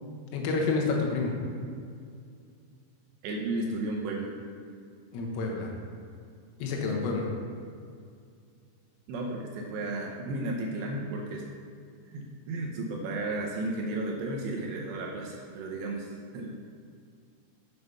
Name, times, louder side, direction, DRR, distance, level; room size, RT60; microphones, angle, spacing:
voice 1, 0.3-1.3 5.1-5.7 6.6-7.3, left 4 dB, 90° left, 0 dB, 3.8 m, -28 dB
voice 2, 3.2-4.3 9.1-11.4 12.1-16.5, right 2 dB, 75° right, -1 dB, 2.7 m, -33 dB
8.0 x 6.5 x 5.5 m, 2.3 s
omnidirectional pair, 5.7 m